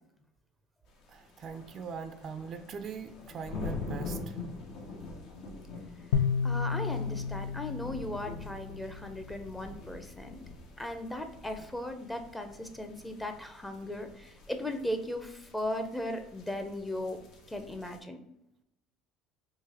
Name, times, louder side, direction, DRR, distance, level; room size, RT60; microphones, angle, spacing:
sound 1, 0.9-18.0, left 3 dB, 65° left, 0.7 m, -45 dB
voice 1, 1.1-4.4, right 6 dB, 45° right, 8 dB, 0.4 m, -41 dB
sound 2, 6.1-9.4, left 6 dB, 90° left, 0.3 m, -32 dB
voice 2, 6.4-10.4 10.8-17.2 17.5-18.2, left 1 dB, 10° left, 6 dB, 0.6 m, -37 dB
3.8 x 2.5 x 2.9 m, 0.85 s
supercardioid pair, 100°, 0 cm